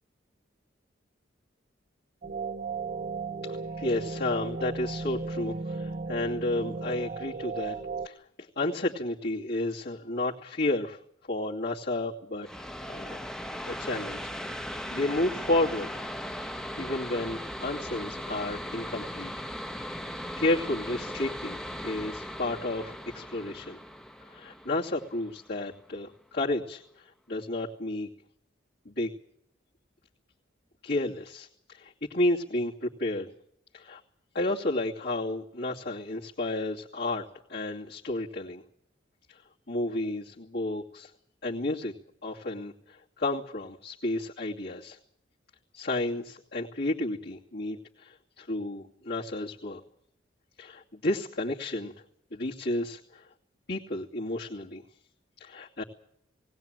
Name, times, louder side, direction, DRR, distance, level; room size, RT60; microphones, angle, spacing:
sound 1, 2.2-8.1, right 4 dB, 45° right, 1.0 m, -35 dB
voice 1, 3.4-7.8 8.0-11.0 11.3-12.5 12.8-13.2 13.7-16.0 16.8-19.3 19.9-21.6 21.8-23.8 24.3-28.1 28.8-29.1 30.8-33.3 33.7-34.0 34.3-37.2 37.5-38.6 39.3-39.4 39.7-41.1 41.4-41.9 42.2-45.0 45.7-49.8 50.6-51.9 52.3-53.3 53.7-54.8 55.4-55.8, left 2 dB, 60° left, -6 dB, 2.6 m, -32 dB
sound 2, 12.4-25.8, equal, 5° left, 0.9 m, -38 dB
20.0 x 18.5 x 9.0 m, 0.71 s
head